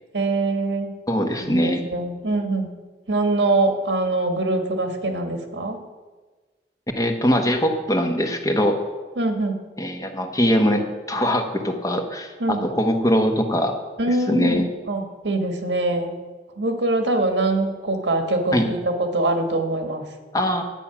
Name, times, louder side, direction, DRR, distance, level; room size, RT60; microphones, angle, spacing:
voice 1, 0.1-0.9 1.4-2.7 3.1-5.8 9.2-9.6 12.4-12.6 14.0-14.6 14.9-16.1 16.6-20.0, right 2 dB, 85° right, 5 dB, 1.6 m, -23 dB
voice 2, 1.1-1.8 7.0-8.8 9.8-13.8 14.1-14.6 18.5-18.6 20.3-20.6, equal, 20° left, 4 dB, 1.1 m, -22 dB
11.0 x 8.8 x 5.9 m, 1.3 s
head